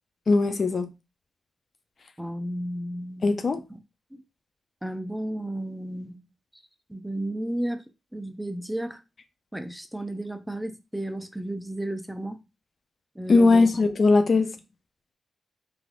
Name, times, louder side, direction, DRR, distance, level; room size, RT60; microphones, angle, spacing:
voice 1, 0.3-0.9 3.2-3.6 13.3-14.5, left 3 dB, 55° left, 0.4 m, -19 dB
voice 2, 2.2-3.6 4.1-4.2 4.8-6.3 6.9-7.9 8.1-9.0 9.5-12.4 13.2-13.7, right 1 dB, 5° right, 0.5 m, -33 dB
3.2 x 2.3 x 2.5 m
supercardioid pair, 40°, 0 cm